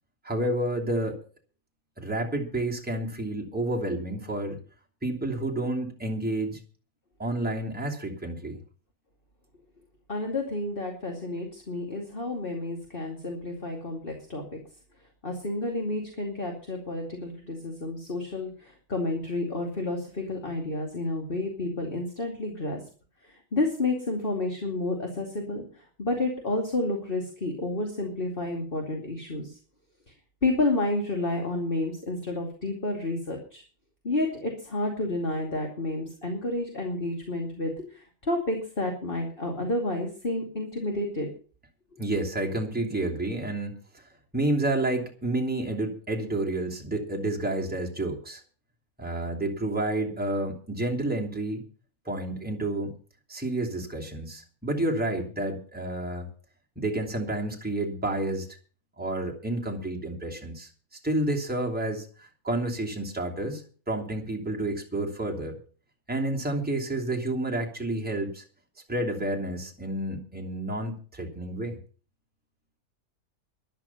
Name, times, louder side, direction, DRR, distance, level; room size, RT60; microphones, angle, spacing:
voice 1, 0.2-1.2 2.0-4.6 5.0-6.6 7.2-8.6 42.0-44.1 44.3-48.4 49.0-51.6 52.0-52.9 53.3-56.3 56.8-58.5 59.0-60.7 61.0-65.5 66.1-68.4 68.9-71.8, right 1 dB, 5° right, -1 dB, 2.8 m, -30 dB
voice 2, 10.1-14.4 15.2-22.8 23.2-29.6 30.1-30.2 30.4-33.6 34.0-41.3, left 2 dB, 40° left, 2 dB, 2.8 m, -30 dB
13.0 x 11.5 x 5.7 m, 0.40 s
omnidirectional pair, 1.4 m